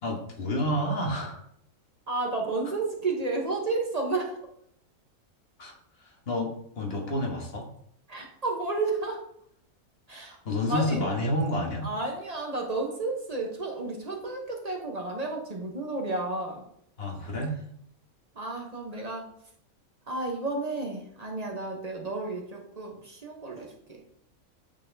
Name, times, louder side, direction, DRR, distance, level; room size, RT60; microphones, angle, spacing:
voice 1, 0.0-1.4 5.6-5.7 6.3-7.7 10.4-11.9 17.0-17.6, left 1 dB, 45° left, 1 dB, 1.3 m, -29 dB
voice 2, 2.1-4.4 8.1-9.2 10.1-10.4 10.7-11.0 11.8-16.6 18.4-19.2 20.1-24.0, right 3 dB, 35° right, 1 dB, 0.8 m, -32 dB
8.6 x 4.1 x 2.7 m, 0.69 s
omnidirectional pair, 1.5 m